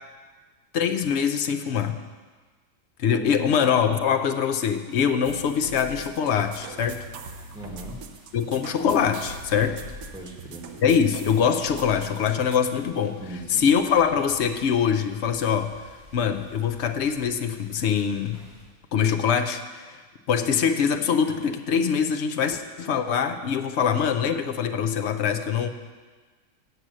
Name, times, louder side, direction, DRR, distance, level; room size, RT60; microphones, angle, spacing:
voice 1, 0.7-2.0 3.0-7.1 8.3-9.8 10.8-13.2 13.5-15.8 16.1-18.4 18.9-20.0 20.3-25.7, left 7 dB, 65° left, 8 dB, 0.7 m, -23 dB
voice 2, 3.1-3.6 7.5-8.0 10.1-10.7 13.2-13.7, right 1 dB, 5° right, -2 dB, 1.3 m, -39 dB
sound 1, 5.2-12.6, right 3 dB, 70° right, 1.1 m, -41 dB
sound 2, 5.4-18.6, left 1 dB, 20° right, 3.9 m, -51 dB
8.3 x 6.5 x 7.4 m, 1.4 s
omnidirectional pair, 1.5 m